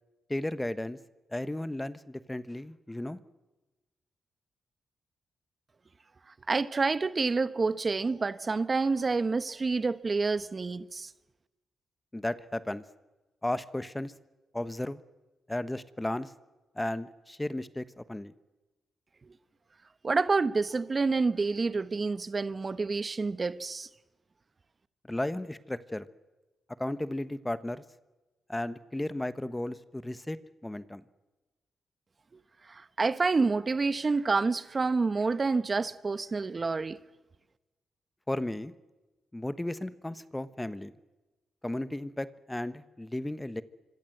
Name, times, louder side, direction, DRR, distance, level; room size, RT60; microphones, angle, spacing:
voice 1, 0.3-1.0 1.3-3.2 12.1-12.8 13.4-14.1 14.5-15.0 15.5-16.3 16.7-18.3 25.1-26.1 26.8-27.8 28.5-30.4 30.6-31.0 38.3-38.7 39.3-40.9 41.6-43.6, left 1 dB, 10° left, 1.1 m, -34 dB
voice 2, 6.5-11.1 20.0-23.9 32.7-37.0, right 4 dB, 35° right, 1.0 m, -28 dB
25.5 x 24.5 x 7.9 m
cardioid pair, 75°, 0 cm